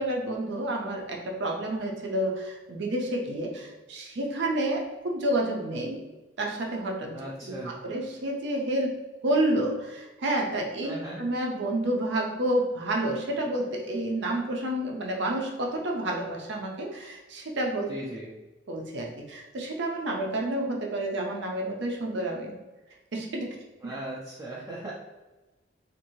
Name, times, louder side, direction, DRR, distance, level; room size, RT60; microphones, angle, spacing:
voice 1, 0.0-6.0 6.4-7.2 7.5-17.9 18.7-22.6 23.1-23.6, right 1 dB, 65° right, 0 dB, 0.6 m, -29 dB
voice 2, 7.1-7.7 10.8-11.2 17.9-18.3 23.8-24.9, right 1 dB, 15° right, -6 dB, 0.4 m, -38 dB
2.7 x 2.6 x 2.9 m, 1.1 s
head